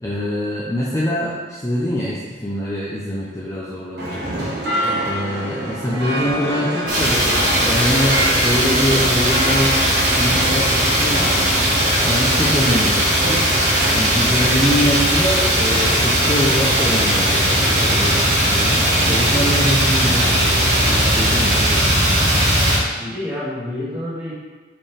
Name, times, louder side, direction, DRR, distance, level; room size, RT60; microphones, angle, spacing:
voice 1, 0.0-4.6 5.0-9.8 10.1-11.6 12.1-13.5 13.9-22.4, equal, 15° left, -6 dB, 0.6 m, -24 dB
sound 1, 4.0-21.1, right 1 dB, 65° right, 1.4 m, -27 dB
sound 2, 6.9-22.8, equal, 40° right, 1.8 m, -18 dB
voice 2, 23.0-24.3, left 1 dB, 10° right, -9 dB, 1.7 m, -29 dB
5.5 x 5.2 x 3.4 m, 1.4 s
head